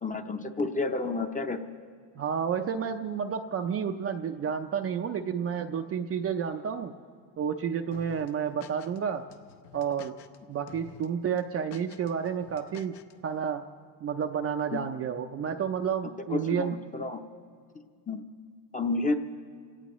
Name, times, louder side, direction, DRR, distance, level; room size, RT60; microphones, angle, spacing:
voice 1, 0.0-1.6 14.7-14.8 16.3-17.2 18.1-18.2 18.7-19.1, left 3 dB, 15° left, 6 dB, 0.7 m, -30 dB
voice 2, 2.2-6.9 7.4-9.3 9.7-10.1 10.5-13.0 13.2-13.6 14.0-16.7, right 7 dB, 30° right, 5 dB, 0.5 m, -30 dB
sound 1, 7.9-9.0 9.3-10.4 10.7-11.1 11.4-13.1, left 11 dB, 60° left, 0.9 m, -50 dB
27.0 x 17.5 x 3.1 m, 2.1 s
cardioid pair, 125°, 49 cm